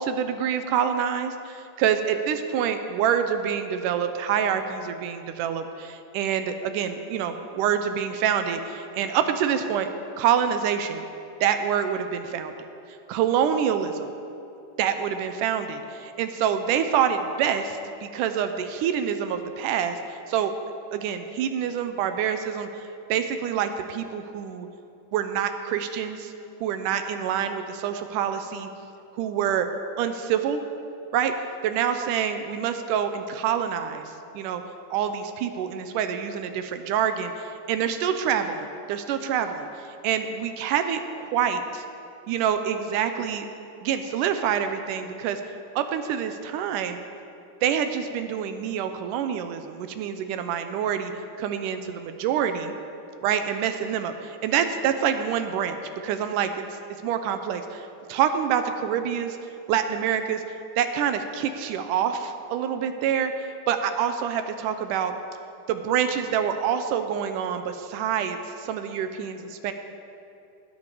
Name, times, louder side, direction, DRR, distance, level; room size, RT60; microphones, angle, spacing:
voice 1, 0.0-9.9 10.2-11.1 11.4-12.5 13.1-14.1 14.8-20.5 20.9-22.7 23.1-24.7 25.1-26.3 26.6-28.7 29.1-29.7 30.0-30.6 31.1-31.3 31.6-34.0 34.3-34.6 34.9-41.8 42.3-43.5 43.8-45.4 45.8-47.0 47.6-51.1 51.4-52.7 53.2-55.8 56.0-56.7 57.0-59.4 59.7-60.4 60.8-65.1 65.7-69.7, right 8 dB, 80° right, 8 dB, 2.2 m, -26 dB
19.0 x 9.7 x 4.8 m, 2.7 s
omnidirectional pair, 3.7 m